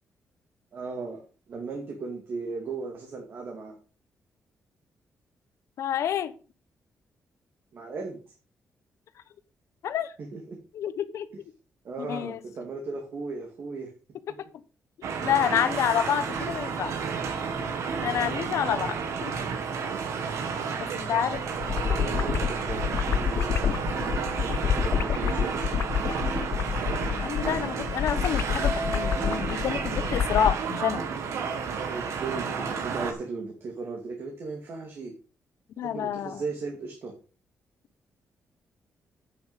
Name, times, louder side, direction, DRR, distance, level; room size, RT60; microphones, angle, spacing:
voice 1, 0.7-3.8 7.7-8.2 10.3-10.6 11.8-13.9 21.8-23.7 24.3-25.8 31.9-35.1 35.8-37.1, right 4 dB, 50° right, 1 dB, 2.3 m, -37 dB
voice 2, 5.8-6.3 9.8-10.1 10.7-11.3 12.0-12.4 15.2-16.9 18.0-19.3 20.8-21.4 27.1-31.0 35.8-36.4, left 9 dB, 75° left, 13 dB, 1.0 m, -28 dB
sound 1, 15.0-33.1, right 5 dB, 80° right, 1.8 m, -31 dB
sound 2, 21.6-30.6, left 9 dB, 50° left, 0.4 m, -28 dB
8.8 x 7.2 x 5.4 m, 0.35 s
wide cardioid pair, 155°, 5 cm